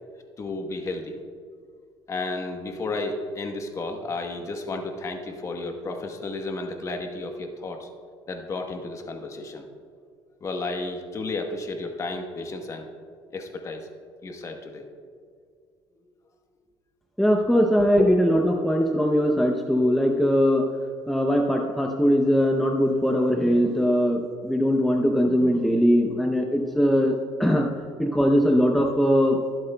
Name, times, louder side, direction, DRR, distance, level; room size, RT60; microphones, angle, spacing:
voice 1, 0.4-1.2 2.1-7.9 8.3-9.7 10.4-12.9 13.3-13.9 14.2-14.9 17.6-18.1 27.8-27.9, left 2 dB, 30° left, 4 dB, 1.1 m, -32 dB
voice 2, 17.2-20.6 21.1-27.7 28.0-29.4, equal, ahead, 1 dB, 0.6 m, -21 dB
23.0 x 7.8 x 2.2 m, 2.1 s
cardioid pair, 140°, 10 cm